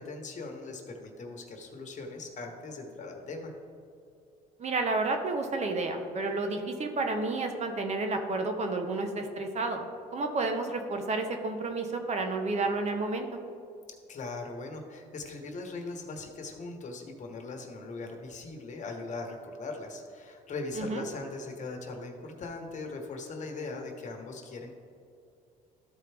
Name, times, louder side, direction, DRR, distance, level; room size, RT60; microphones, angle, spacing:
voice 1, 0.0-3.5 14.1-24.7, left 3 dB, 45° left, 3 dB, 1.2 m, -40 dB
voice 2, 4.6-13.3 20.8-21.1, right 3 dB, 40° right, 5 dB, 0.9 m, -31 dB
13.5 x 4.5 x 3.4 m, 2.5 s
cardioid pair, 110°, 17 cm